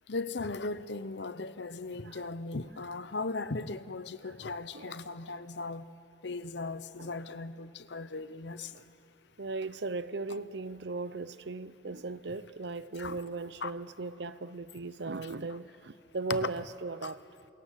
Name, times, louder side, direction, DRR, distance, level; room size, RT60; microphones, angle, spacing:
voice 1, 0.1-5.9 6.2-8.7 13.0-13.1 13.6-13.7 16.4-16.5 17.0-17.1, left 3 dB, 70° left, 0.9 m, -37 dB
voice 2, 4.7-5.1 7.0-7.1 8.7-8.8 9.4-17.2, right 3 dB, 65° right, 0.8 m, -38 dB
29.0 x 27.0 x 7.6 m
head